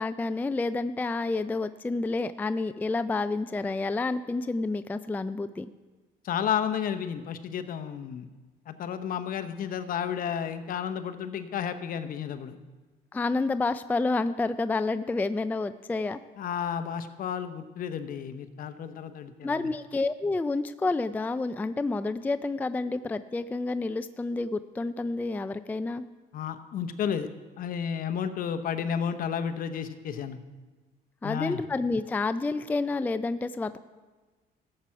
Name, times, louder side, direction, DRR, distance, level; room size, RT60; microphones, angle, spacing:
voice 1, 0.0-5.7 13.1-16.2 19.4-26.0 31.2-33.8, left 3 dB, 10° left, 12 dB, 0.3 m, -29 dB
voice 2, 6.2-8.3 8.7-12.6 16.4-19.7 26.3-27.3 27.6-30.4 31.2-31.6, left 8 dB, 55° left, 10 dB, 0.9 m, -32 dB
14.0 x 7.6 x 5.8 m, 1.3 s
cardioid pair, 110°, 17 cm